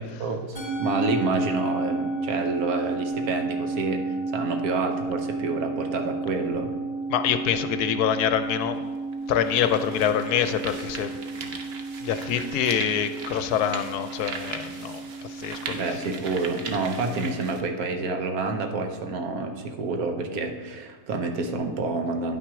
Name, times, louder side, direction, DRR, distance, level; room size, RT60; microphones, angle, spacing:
voice 1, 0.2-6.7 15.7-22.4, right 3 dB, 70° right, 5 dB, 1.2 m, -28 dB
Musical instrument, 0.6-19.1, right 3 dB, 35° right, 2.8 m, -33 dB
voice 2, 7.1-8.8 9.3-11.2 12.0-15.8, left 9 dB, 75° left, 10 dB, 1.1 m, -25 dB
sound 1, 8.4-8.5 9.1-17.6, right 4 dB, 50° right, 0.8 m, -39 dB
9.8 x 6.0 x 4.7 m, 1.5 s
omnidirectional pair, 1.7 m